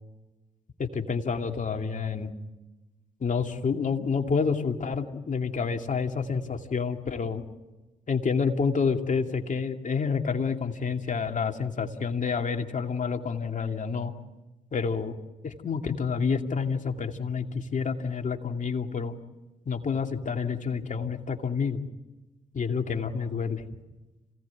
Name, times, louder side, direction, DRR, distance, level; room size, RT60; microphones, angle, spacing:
voice 1, 0.8-2.3 3.2-7.4 8.1-14.1 14.7-15.2 15.4-19.2 19.7-21.8 22.5-23.6, left 5 dB, 50° left, 4 dB, 2.4 m, -28 dB
27.0 x 17.5 x 9.7 m, 1.1 s
supercardioid pair, 45°, 16 cm